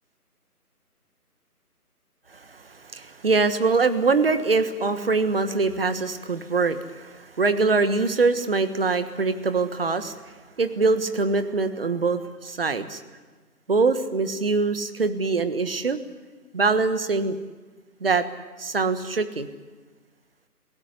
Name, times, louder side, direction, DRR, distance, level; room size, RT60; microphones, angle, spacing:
voice 1, 2.5-10.2 10.6-13.0 13.7-16.0 16.5-17.4 18.0-18.2 18.6-19.5, right 4 dB, 40° right, 11 dB, 1.5 m, -23 dB
27.0 x 17.5 x 8.4 m, 1.4 s
figure-of-eight pair, 155°, 46 cm